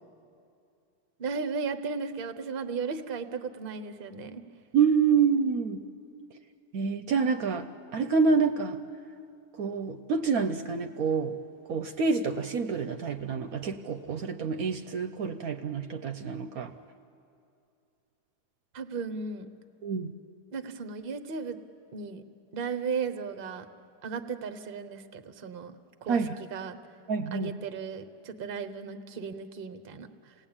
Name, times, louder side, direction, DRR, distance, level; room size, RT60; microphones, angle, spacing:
voice 1, 1.2-4.4 18.7-19.5 20.5-21.6 21.9-22.2 22.5-23.7 24.0-25.7 26.0-26.8 27.3-30.3, right 5 dB, 40° right, 10 dB, 1.0 m, -35 dB
voice 2, 4.7-5.8 6.7-7.7 7.9-8.8 9.6-11.4 11.7-16.7 19.8-20.1 26.1-26.4 27.1-27.5, right 5 dB, 65° right, 8 dB, 1.2 m, -27 dB
28.0 x 18.0 x 8.8 m, 2.6 s
omnidirectional pair, 1.8 m